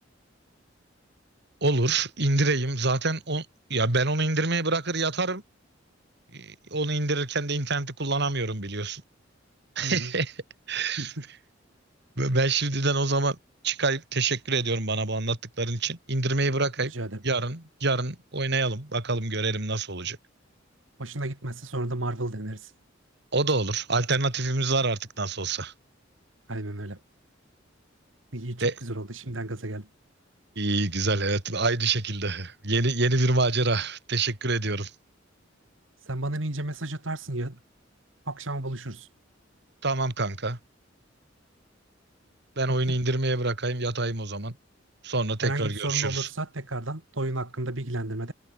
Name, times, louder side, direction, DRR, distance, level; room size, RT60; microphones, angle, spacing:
voice 1, 1.6-3.5 3.7-5.4 6.3-9.0 9.8-10.4 10.7-11.1 12.2-13.4 13.6-16.9 17.2-20.2 23.3-25.7 28.6-28.8 30.6-34.9 39.8-40.6 42.6-44.6 45.0-46.3, right 3 dB, 60° right, 3.8 m, -26 dB
voice 2, 21.0-22.7 26.5-27.0 28.3-29.9 36.1-37.6 38.3-39.1 45.4-48.3, right 1 dB, 85° right, 2.9 m, -32 dB
head